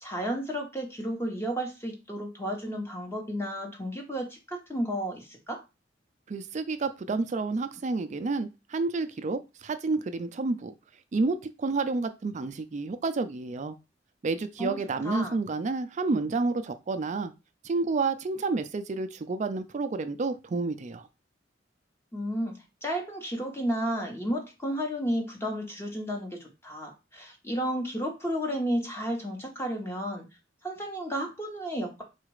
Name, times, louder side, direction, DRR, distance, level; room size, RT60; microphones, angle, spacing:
voice 1, 0.0-5.6 14.6-14.8 15.0-15.4 22.1-30.3 30.6-32.0, equal, 15° left, 1 dB, 1.0 m, -32 dB
voice 2, 6.3-10.7 11.1-13.8 14.2-17.3 17.6-21.1, right 3 dB, 40° right, 10 dB, 0.4 m, -30 dB
4.0 x 2.4 x 4.7 m, 0.27 s
head